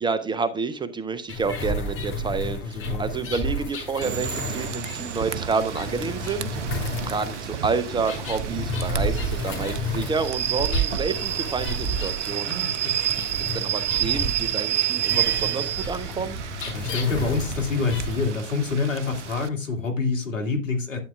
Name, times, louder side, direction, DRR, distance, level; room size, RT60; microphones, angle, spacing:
voice 1, 0.0-6.5 7.0-12.5 13.4-16.4, right 5 dB, 10° right, 0.6 m, -29 dB
sound 1, 1.3-18.3, left 1 dB, 30° left, 6.1 m, -31 dB
voice 2, 2.6-3.0 12.5-13.0 16.7-21.0, left 4 dB, 80° left, 2.4 m, -27 dB
Rain / Train, 4.0-19.5, right 11 dB, 70° right, 0.9 m, -30 dB
12.0 x 8.4 x 2.3 m
figure-of-eight pair, 95°, 37 cm